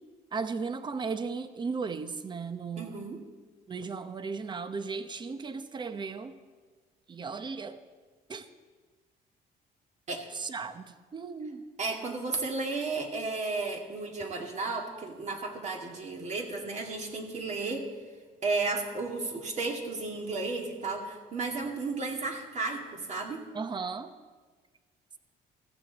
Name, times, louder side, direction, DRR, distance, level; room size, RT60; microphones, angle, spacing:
voice 1, 0.3-3.0 3.7-6.4 7.1-7.8 8.3-8.5 10.3-11.6 23.5-24.1, right 5 dB, 25° right, 10 dB, 0.9 m, -36 dB
voice 2, 2.8-3.2 10.1-10.3 11.8-17.9 18.4-23.4, right 3 dB, 45° right, 1 dB, 2.3 m, -33 dB
15.0 x 14.5 x 4.1 m, 1.4 s
cardioid pair, 110°, 17 cm